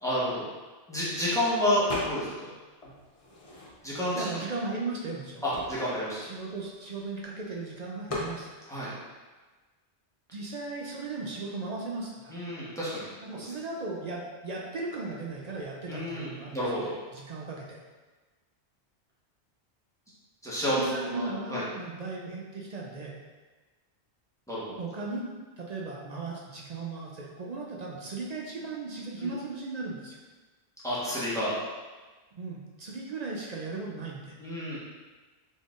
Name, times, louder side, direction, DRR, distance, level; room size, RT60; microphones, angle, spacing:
voice 1, 0.0-0.4 0.9-2.5 3.8-4.2 5.4-6.2 8.7-8.9 12.3-13.4 15.9-16.9 20.4-21.6 24.5-24.6 29.2-29.3 30.8-31.5 34.4-34.8, equal, 5° left, -9 dB, 0.9 m, -30 dB
sound 1, 1.9-2.5 2.8-4.1 4.7-4.8 5.0-7.2 8.1-8.4, left 1 dB, 40° left, 0.7 m, -38 dB
voice 2, 4.1-5.4 6.2-8.5 10.3-12.3 13.2-17.8 20.7-23.1 24.8-30.2 32.4-34.3, right 3 dB, 55° right, -2 dB, 0.5 m, -37 dB
4.0 x 3.5 x 2.4 m, 1.3 s
omnidirectional pair, 1.1 m